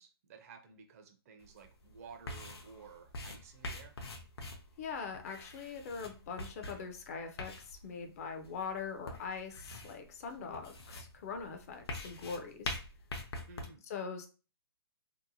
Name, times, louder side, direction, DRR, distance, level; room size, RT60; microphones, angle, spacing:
voice 1, 0.0-4.0 13.5-13.9, right 5 dB, 35° right, 5 dB, 0.4 m, -54 dB
sound 1, 1.4-13.7, left 2 dB, 75° left, 0.6 m, -45 dB
voice 2, 4.8-12.8 13.9-14.3, left 5 dB, 35° left, 6 dB, 0.4 m, -42 dB
2.7 x 2.1 x 2.6 m, 0.34 s
hypercardioid pair, 145°, 13 cm